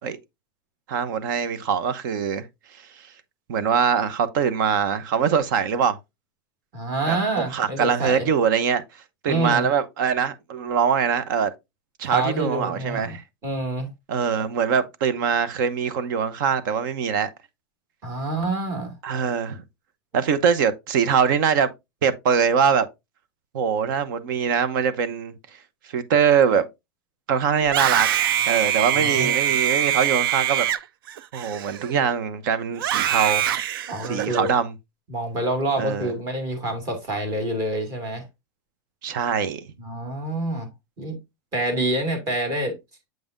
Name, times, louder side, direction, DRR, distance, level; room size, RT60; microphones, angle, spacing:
voice 1, 0.9-2.4 3.5-6.0 7.1-8.8 9.2-11.5 12.0-13.2 14.1-17.3 19.0-19.6 20.1-21.7 22.0-22.9 23.5-25.3 25.9-26.6 27.3-28.1 28.5-30.7 31.3-33.4 34.1-34.7 35.8-36.1 39.0-39.7, right 7 dB, 60° right, 1.0 m, -22 dB
voice 2, 6.7-8.3 9.3-9.7 12.0-13.2 13.4-13.9 18.0-18.9 28.9-29.4 33.9-34.5 35.1-38.3 39.8-40.7 41.0-41.2 41.5-42.8, right 2 dB, 30° right, 2.3 m, -27 dB
Screaming, 27.6-32.1 32.8-34.5, right 10 dB, 80° right, 0.5 m, -24 dB
7.7 x 5.4 x 2.6 m
supercardioid pair, 160°, 12 cm